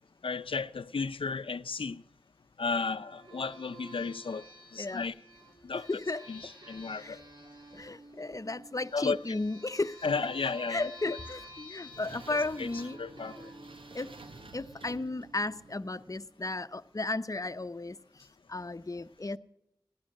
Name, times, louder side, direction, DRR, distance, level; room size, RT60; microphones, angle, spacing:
voice 1, 0.2-2.0 2.6-4.4 4.7-5.1 5.6-5.9 6.3-7.2 8.9-9.4 10.0-11.2 12.3-12.7 13.0-13.5, left 4 dB, 90° left, 0.6 m, -34 dB
sound 1, 2.8-16.0, right 1 dB, 55° right, 4.7 m, -51 dB
voice 2, 5.9-6.2 7.0-7.2 7.7-10.0 10.7-13.0 13.9-14.1 14.5-18.0 18.5-19.4, left 2 dB, 40° left, 0.7 m, -34 dB
sound 2, 11.4-16.3, right 3 dB, 85° right, 0.9 m, -52 dB
17.0 x 11.0 x 6.4 m
wide cardioid pair, 40°, 9 cm